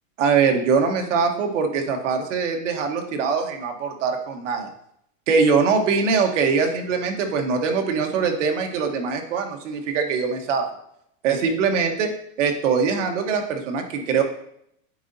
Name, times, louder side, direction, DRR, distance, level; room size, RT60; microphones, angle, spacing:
voice 1, 0.2-4.7 5.3-10.6 11.2-12.1 12.4-14.2, right 5 dB, 60° right, 4 dB, 1.2 m, -22 dB
9.1 x 4.0 x 2.7 m, 0.72 s
supercardioid pair, 170°, 42 cm